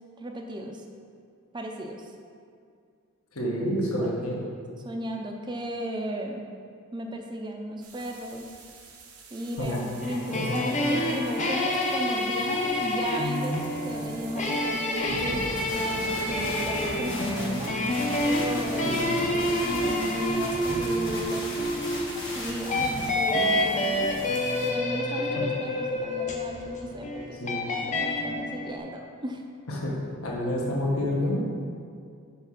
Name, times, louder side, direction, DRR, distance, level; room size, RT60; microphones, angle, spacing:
voice 1, 0.2-0.8 1.5-2.0 4.0-4.1 4.8-6.4 6.9-8.5 9.3-9.7 10.0-15.4 15.7-21.6 22.3-29.4, right 1 dB, 20° right, 2 dB, 0.5 m, -35 dB
voice 2, 3.3-4.4 9.6-9.9 10.3-10.5 18.8-19.2 25.4-25.5 27.4-27.7 29.7-29.9 30.2-31.4, left 1 dB, 75° left, -3 dB, 1.3 m, -28 dB
sound 1, 7.8-24.7, right 1 dB, 85° right, 1.0 m, -41 dB
sound 2, 10.0-28.8, left 1 dB, 35° left, 0.6 m, -28 dB
sound 3, 15.5-23.1, left 1 dB, 50° left, 1.6 m, -38 dB
5.8 x 4.7 x 5.8 m, 2.3 s
head